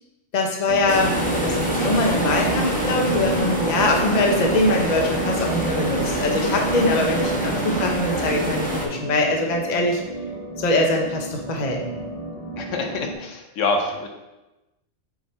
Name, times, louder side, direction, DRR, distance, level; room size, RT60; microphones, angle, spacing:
voice 1, 0.3-10.0 10.6-11.8, left 2 dB, 40° left, 1 dB, 0.9 m, -23 dB
sound 1, 0.7-13.1, right 2 dB, 30° right, 0.9 m, -31 dB
sound 2, 0.9-8.9, right 1 dB, 5° left, 0.9 m, -25 dB
voice 2, 12.6-14.1, left 3 dB, 75° left, 3 dB, 1.1 m, -26 dB
7.6 x 4.3 x 3.3 m, 1.0 s
omnidirectional pair, 1.3 m